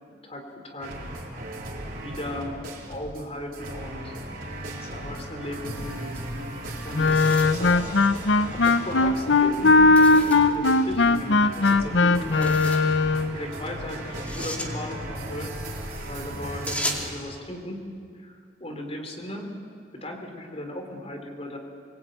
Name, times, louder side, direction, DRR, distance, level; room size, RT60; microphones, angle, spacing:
voice 1, 0.2-0.9 1.9-2.6 2.9-4.1 4.8-7.8 8.1-13.0 13.3-15.7 16.0-17.8 18.2-19.5 19.9-21.6, left 1 dB, 35° left, 3 dB, 3.7 m, -37 dB
sound 1, 0.8-3.2 3.5-17.1, right 1 dB, 55° right, 4.7 m, -36 dB
Wind instrument woodwind instrument, 6.9-13.3, left 3 dB, 85° left, 0.9 m, -19 dB
sound 2, 6.9-8.5 9.9-10.5 12.2-12.9 14.1-14.7 16.7-17.1, equal, 10° left, 2.5 m, -35 dB
24.5 x 22.5 x 9.1 m, 2.3 s
head